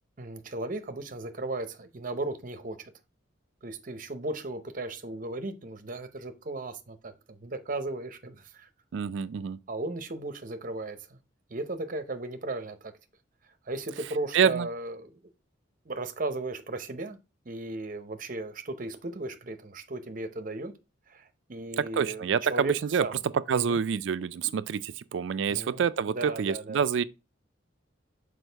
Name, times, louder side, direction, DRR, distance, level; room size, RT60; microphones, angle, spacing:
voice 1, 0.2-2.9 3.6-8.7 9.7-11.2 11.5-12.9 13.7-15.2 15.9-17.2 17.5-20.7 21.1-22.7 23.0-23.2 23.5-23.8 25.5-26.8, right 2 dB, 45° right, 0.7 m, -36 dB
voice 2, 8.9-9.6 14.3-14.7 21.8-23.1 23.5-27.0, right 7 dB, 65° right, 0.4 m, -27 dB
6.3 x 4.8 x 3.3 m
head